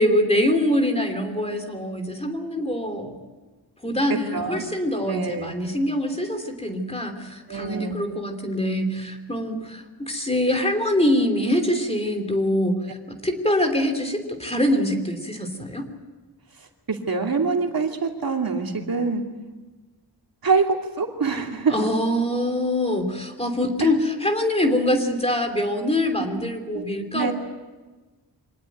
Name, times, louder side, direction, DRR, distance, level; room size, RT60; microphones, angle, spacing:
voice 1, 0.0-3.1 3.8-15.8 21.7-27.3, left 1 dB, 15° left, 5 dB, 2.9 m, -24 dB
voice 2, 4.3-4.6 5.0-5.5 7.5-7.9 16.9-19.2 20.4-21.8 23.8-23.9 26.2-26.3 26.7-26.8 27.1-27.3, right 4 dB, 60° right, 2 dB, 2.7 m, -25 dB
25.5 x 19.0 x 9.3 m, 1.3 s
wide cardioid pair, 110°, 41 cm